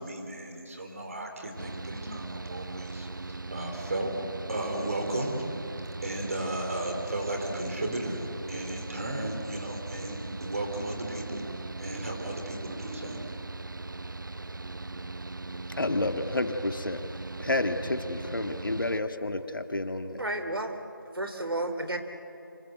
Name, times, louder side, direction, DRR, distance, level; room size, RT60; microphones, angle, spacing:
voice 1, 0.0-4.2 4.5-5.5 6.0-11.4 11.8-13.2, right 1 dB, 40° right, 3 dB, 3.9 m, -35 dB
Mechanical fan, 1.6-19.0, right 3 dB, 60° right, 0.8 m, -39 dB
voice 2, 15.8-17.0 17.4-20.2, left 2 dB, 60° left, 7 dB, 1.8 m, -30 dB
voice 3, 20.2-22.0, right 1 dB, 80° right, 7 dB, 3.1 m, -32 dB
27.5 x 26.5 x 8.0 m, 2.8 s
figure-of-eight pair, 170°, 12 cm